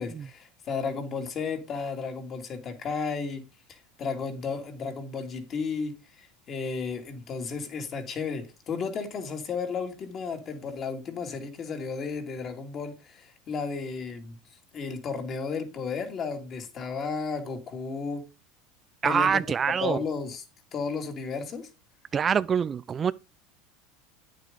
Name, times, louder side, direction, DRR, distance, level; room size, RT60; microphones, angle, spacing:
voice 1, 0.0-3.4 3.7-14.4 14.7-18.2 19.0-19.4 19.8-20.4 20.7-21.7, left 5 dB, 40° left, 2.4 m, -33 dB
voice 2, 19.0-20.0 22.1-23.1, right 7 dB, 30° right, 0.4 m, -25 dB
9.2 x 7.6 x 3.8 m
hypercardioid pair, 95°, 0 cm